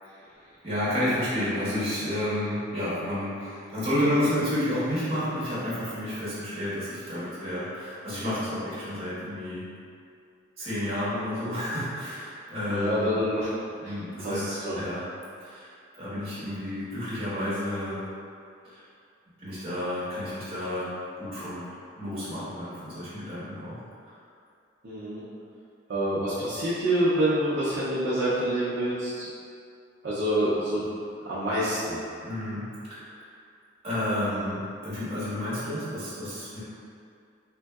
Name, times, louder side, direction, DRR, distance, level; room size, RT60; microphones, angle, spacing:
voice 1, 0.0-9.7 10.6-13.1 13.8-14.4 14.7-15.0 15.4-18.0 18.6-18.8 19.4-21.7 22.0-23.8 24.0-24.1 32.2-32.6 32.9-33.2 33.8-36.6, left 1 dB, 30° right, -12 dB, 1.2 m, -31 dB
voice 2, 12.7-13.5 13.8-14.8 24.8-25.2 25.9-29.3 30.0-30.9 31.2-32.0, right 1 dB, 55° right, -11 dB, 0.5 m, -27 dB
3.6 x 2.7 x 2.3 m, 2.4 s
head